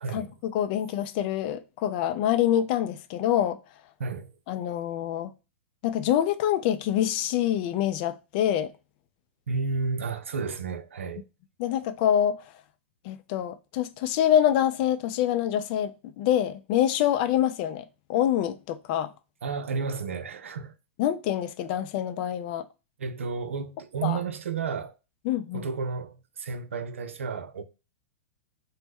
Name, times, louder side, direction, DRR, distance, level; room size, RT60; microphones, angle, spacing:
voice 1, 0.1-3.6 4.5-5.3 5.8-8.7 11.6-12.4 13.0-17.8 18.1-19.1 21.0-22.6 24.0-24.2 25.3-25.7, left 11 dB, 45° left, 0.4 m, -26 dB
voice 2, 4.0-4.3 9.5-11.2 19.4-20.7 23.0-24.9 25.5-27.6, right 5 dB, 80° right, 0.4 m, -32 dB
3.0 x 2.1 x 3.4 m
hypercardioid pair, 110°, 7 cm